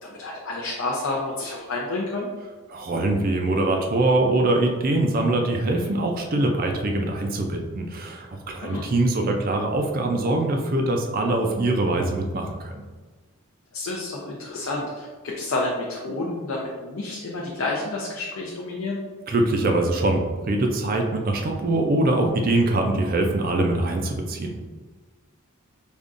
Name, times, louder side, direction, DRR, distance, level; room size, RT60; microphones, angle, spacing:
voice 1, 0.0-2.3 8.6-8.8 13.7-19.0, left 2 dB, 65° left, -3 dB, 0.5 m, -29 dB
voice 2, 2.7-12.7 19.3-24.6, right 2 dB, 40° right, 2 dB, 0.4 m, -23 dB
5.1 x 2.3 x 2.5 m, 1.3 s
head